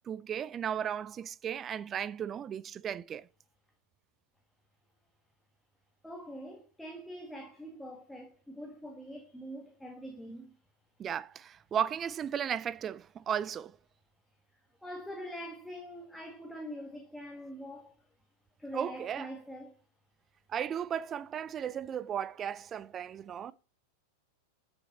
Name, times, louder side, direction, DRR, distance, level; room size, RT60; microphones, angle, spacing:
voice 1, 0.1-3.3 11.0-13.8 18.7-19.3 20.5-23.5, right 9 dB, 25° right, 0.4 m, -35 dB
voice 2, 6.0-10.6 14.8-18.0 18.6-19.8, equal, 5° left, 1.6 m, -44 dB
14.0 x 6.2 x 4.1 m
figure-of-eight pair, 90°, 0 cm